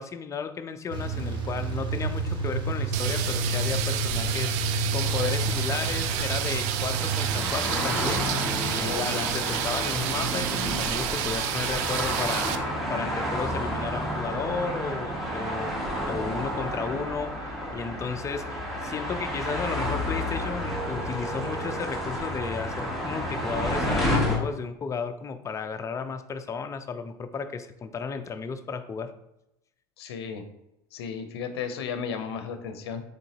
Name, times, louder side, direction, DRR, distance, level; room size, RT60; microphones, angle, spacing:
voice 1, 0.0-4.5 4.9-8.2 8.7-12.5 12.9-29.1, left 5 dB, 25° left, 9 dB, 0.4 m, -34 dB
sound 1, 0.9-12.0, right 2 dB, 40° right, 1.1 m, -31 dB
sound 2, 2.9-12.6, right 10 dB, 60° right, 0.4 m, -30 dB
sound 3, 5.0-24.4, equal, ahead, 1.2 m, -31 dB
voice 2, 8.8-9.3 30.0-30.4 30.9-33.0, left 6 dB, 85° left, 8 dB, 0.5 m, -34 dB
3.8 x 3.6 x 2.8 m, 0.88 s
hypercardioid pair, 90°, 13 cm